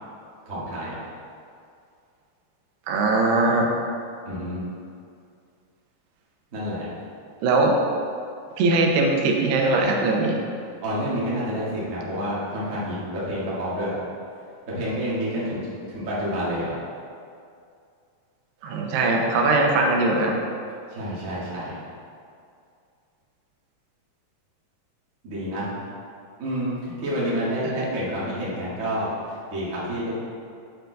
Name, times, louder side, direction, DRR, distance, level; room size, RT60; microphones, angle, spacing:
voice 1, 0.4-1.0 4.2-4.6 6.5-6.9 10.8-14.0 14.7-16.7 20.9-21.8 25.2-25.7 26.4-30.1, equal, 55° right, -9 dB, 0.9 m, -29 dB
voice 2, 2.9-3.7 7.4-7.8 8.6-10.4 18.6-20.3 27.6-27.7, right 2 dB, 90° right, 0 dB, 2.8 m, -20 dB
8.8 x 4.6 x 3.9 m, 2.4 s
omnidirectional pair, 4.6 m